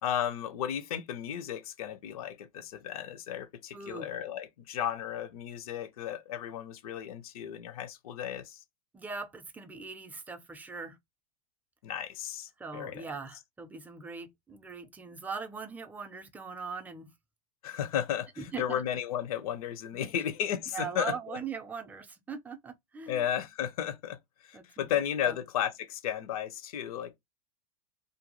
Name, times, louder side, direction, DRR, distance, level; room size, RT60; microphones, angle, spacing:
voice 1, 0.0-8.6 11.8-13.1 17.6-21.4 23.1-27.2, left 10 dB, 80° left, 0.7 m, -34 dB
voice 2, 3.7-4.1 8.9-11.0 12.6-17.1 18.4-18.8 19.9-20.2 20.7-23.3 24.5-25.4, right 5 dB, 10° right, 0.5 m, -41 dB
2.6 x 2.2 x 2.9 m
supercardioid pair, 120°, 18 cm